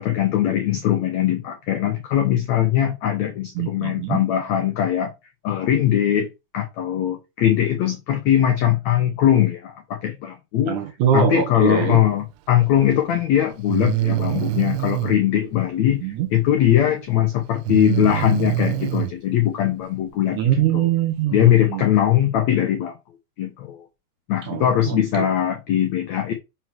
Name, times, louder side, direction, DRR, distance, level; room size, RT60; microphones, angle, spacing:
voice 1, 0.0-5.1 5.4-6.3 6.5-10.8 11.1-20.4 20.7-20.9 21.3-22.9 23.4-23.8 24.3-26.3, left 11 dB, 80° left, 1.6 m, -20 dB
voice 2, 3.6-4.2 10.7-12.0 16.0-16.3 20.4-21.8 24.4-25.3, right 9 dB, 65° right, 2.4 m, -23 dB
Breathing, 12.8-12.9 13.7-15.2 17.7-19.1, right 18 dB, 85° right, 2.4 m, -24 dB
5.5 x 4.4 x 6.0 m
omnidirectional pair, 4.5 m